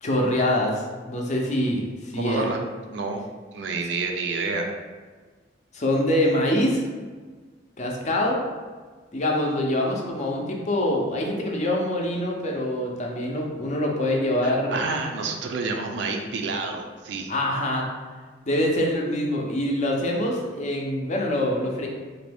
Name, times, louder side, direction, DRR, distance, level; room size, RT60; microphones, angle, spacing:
voice 1, 0.0-2.5 5.7-6.9 7.8-8.4 9.1-14.8 17.3-17.9 18.5-21.9, left 1 dB, 40° left, 0 dB, 0.5 m, -25 dB
voice 2, 2.2-2.6 2.9-3.2 3.5-4.7 14.4-17.3, right 3 dB, 65° right, 3 dB, 0.4 m, -29 dB
3.0 x 2.6 x 3.4 m, 1.4 s
head